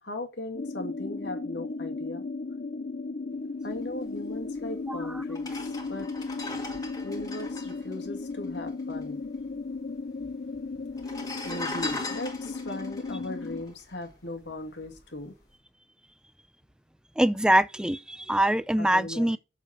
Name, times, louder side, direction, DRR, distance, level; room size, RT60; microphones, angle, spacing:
voice 1, 0.0-2.2 3.6-5.5 5.9-6.1 7.0-9.2 11.4-15.3 18.8-19.4, left 2 dB, 75° left, 2.3 m, -38 dB
sound 1, 0.5-13.6, left 3 dB, 50° left, 0.5 m, -35 dB
sound 2, 4.6-4.7 5.3-9.0 9.2-9.3 9.5-10.2 10.9-14.4 14.8-15.0, left 2 dB, 20° left, 2.1 m, -39 dB
voice 2, 17.2-19.4, right 1 dB, 5° right, 0.4 m, -24 dB
7.4 x 7.2 x 5.9 m
head